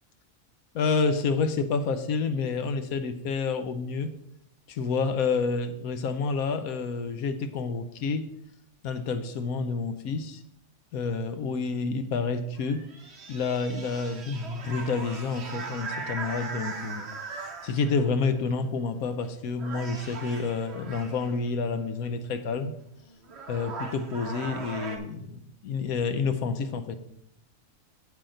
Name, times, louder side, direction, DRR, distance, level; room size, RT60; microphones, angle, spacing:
voice 1, 0.7-4.1 4.7-8.3 8.8-10.4 10.9-12.8 13.3-22.7 23.5-27.0, left 4 dB, 80° left, 10 dB, 1.2 m, -29 dB
sound 1, 12.6-18.1 19.0-19.3 19.6-21.4 22.8-22.9 23.2-25.0, right 4 dB, 50° right, 1.3 m, -39 dB
8.4 x 7.9 x 3.8 m, 0.76 s
omnidirectional pair, 1.5 m